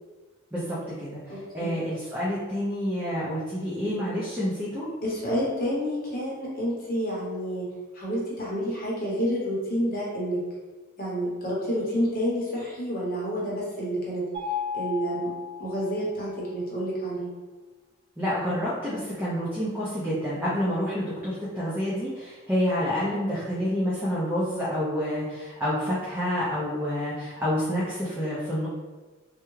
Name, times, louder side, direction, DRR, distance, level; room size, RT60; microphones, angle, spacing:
voice 1, 0.5-4.9 18.2-28.7, equal, 10° right, -9 dB, 0.5 m, -28 dB
voice 2, 1.3-1.7 5.0-7.7 7.9-10.4 11.0-14.2 14.7-15.3 15.6-17.3, equal, 45° left, -6 dB, 0.9 m, -29 dB
Mallet percussion, 14.3-16.3, left 6 dB, 50° right, 0.8 m, -34 dB
3.4 x 2.2 x 3.1 m, 1.3 s
head